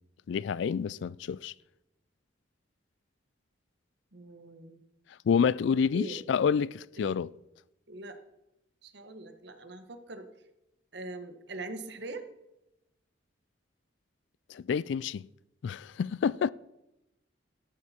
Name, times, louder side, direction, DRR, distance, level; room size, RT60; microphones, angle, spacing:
voice 1, 0.3-1.5 5.3-7.3 14.5-15.2 15.6-16.5, left 6 dB, 65° left, 0.3 m, -28 dB
voice 2, 4.1-4.8 5.9-6.2 7.0-7.2 7.9-8.2 8.8-10.3 10.9-12.3, right 2 dB, 60° right, 1.3 m, -42 dB
13.0 x 11.5 x 4.4 m
head